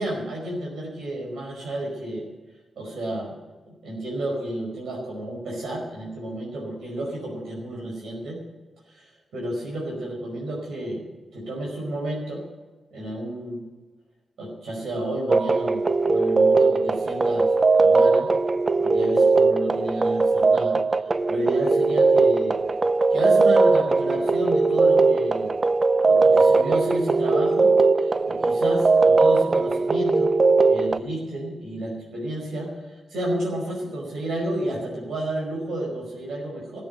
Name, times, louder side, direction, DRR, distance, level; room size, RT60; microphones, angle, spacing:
voice 1, 0.0-2.3 2.7-3.3 3.7-8.4 8.9-11.0 11.3-12.4 12.9-13.6 14.4-17.5 17.8-18.3 18.8-22.6 23.1-25.5 26.0-27.7 28.0-30.3 30.7-36.8, right 1 dB, 85° right, -3 dB, 5.0 m, -31 dB
sound 1, 15.3-31.0, right 3 dB, 30° right, 0.4 m, -19 dB
14.0 x 8.5 x 9.0 m, 1.2 s
wide cardioid pair, 130°, 0 cm